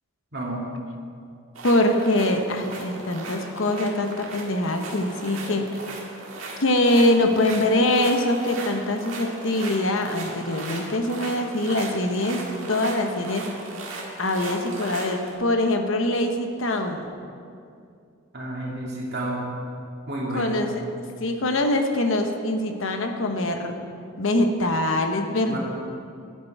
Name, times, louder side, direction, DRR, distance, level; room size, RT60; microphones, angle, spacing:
voice 1, 0.3-0.7 18.3-19.5 20.1-20.6 25.5-25.6, right 1 dB, 50° right, -3 dB, 2.3 m, -30 dB
sound 1, 1.5-15.3, right 2 dB, 70° right, 1.9 m, -37 dB
voice 2, 1.6-5.8 6.6-13.5 14.2-17.1 20.3-20.8 21.2-23.7 24.2-25.6, left 1 dB, 70° left, 5 dB, 0.9 m, -23 dB
12.0 x 8.9 x 4.7 m, 2.4 s
head